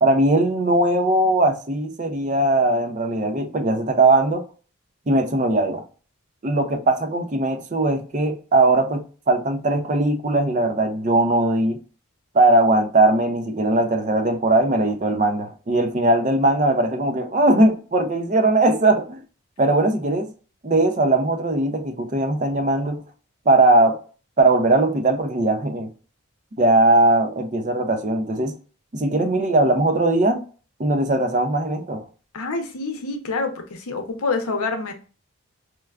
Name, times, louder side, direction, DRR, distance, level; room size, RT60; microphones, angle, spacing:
voice 1, 0.0-4.4 5.1-5.8 6.4-11.8 12.3-19.2 19.6-20.3 20.6-23.0 23.5-24.0 24.4-25.9 26.6-28.5 28.9-30.4 30.8-32.1, right 2 dB, 35° right, 0.5 m, -19 dB
voice 2, 32.3-34.9, left 3 dB, 85° left, 0.7 m, -27 dB
4.5 x 2.2 x 2.3 m
head